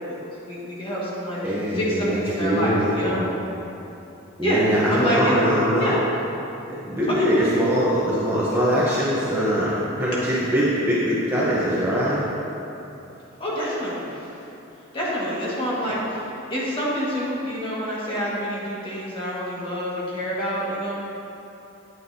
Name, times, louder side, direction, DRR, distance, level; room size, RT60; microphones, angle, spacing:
voice 1, 0.0-3.2 4.4-5.3 5.8-6.0 7.1-7.7 13.4-14.3 14.9-16.2 16.5-20.9, equal, 25° left, -7 dB, 1.7 m, -27 dB
voice 2, 1.4-3.3 4.4-5.9 6.7-12.2 15.9-16.0, equal, 10° right, -8 dB, 0.9 m, -22 dB
9.1 x 8.3 x 2.8 m, 2.9 s
head